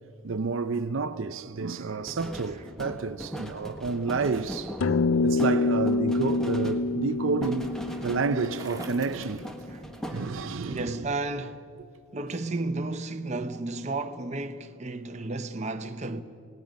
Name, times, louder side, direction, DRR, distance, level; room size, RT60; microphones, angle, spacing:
voice 1, 0.2-4.8 5.2-7.7 8.0-9.5 10.1-11.1, right 4 dB, 70° right, 0.6 m, -30 dB
sound 1, 2.1-8.5 8.8-10.7, equal, 5° left, 1.2 m, -40 dB
sound 2, 4.8-9.5, left 3 dB, 80° left, 0.5 m, -27 dB
Bicycle, 5.9-10.4, right 3 dB, 15° right, 1.7 m, -49 dB
voice 2, 10.7-11.6 12.1-16.2, right 2 dB, 35° right, 0.8 m, -33 dB
27.0 x 18.0 x 5.2 m
head